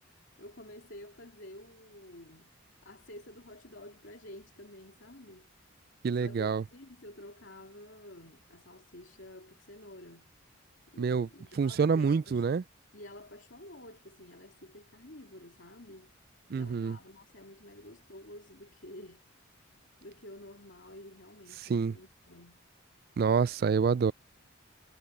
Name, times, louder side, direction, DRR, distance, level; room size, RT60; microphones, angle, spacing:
voice 1, 0.0-5.5 6.2-10.4 10.9-12.5 12.9-16.1 16.5-22.7, left 1 dB, 60° left, 3.5 m, -50 dB
voice 2, 6.0-6.6 11.0-11.3 11.6-12.6 16.5-17.0 21.7-21.9 23.2-24.1, right 5 dB, 50° right, 0.3 m, -27 dB
head